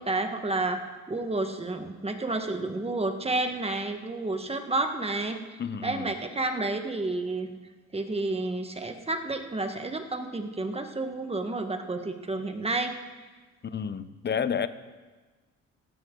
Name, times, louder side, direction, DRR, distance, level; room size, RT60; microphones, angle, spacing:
voice 1, 0.0-7.5 7.9-12.9, right 2 dB, 20° right, 6 dB, 1.5 m, -30 dB
voice 2, 5.6-6.1 13.6-14.7, left 7 dB, 35° left, 13 dB, 0.9 m, -30 dB
16.5 x 15.0 x 3.9 m, 1.3 s
cardioid pair, 90°, 30 cm